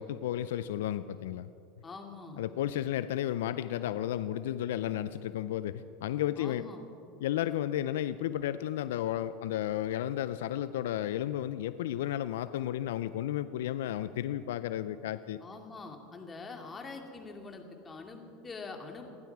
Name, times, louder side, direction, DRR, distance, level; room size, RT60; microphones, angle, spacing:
voice 1, 0.0-1.5 2.4-6.7 7.2-15.4, left 12 dB, 80° left, 14 dB, 0.4 m, -33 dB
voice 2, 1.8-2.4 6.4-6.8 15.4-19.2, left 4 dB, 25° left, 3 dB, 2.5 m, -44 dB
28.0 x 11.0 x 4.7 m, 2.6 s
hypercardioid pair, 95°, 0 cm